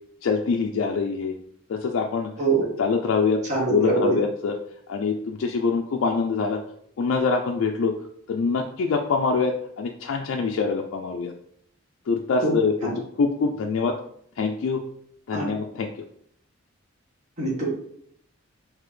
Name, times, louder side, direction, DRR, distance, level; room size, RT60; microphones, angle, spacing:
voice 1, 0.2-1.4 1.7-2.3 2.8-3.4 3.7-4.6 4.9-6.6 7.0-7.9 8.3-11.3 12.1-12.9 13.2-14.0 14.4-14.8 15.3-15.9, left 4 dB, 65° left, 2 dB, 0.3 m, -24 dB
voice 2, 3.5-4.2 12.4-13.0 15.3-15.5 17.4-17.7, right 3 dB, 35° right, -4 dB, 1.2 m, -24 dB
3.9 x 2.8 x 3.1 m, 0.67 s
head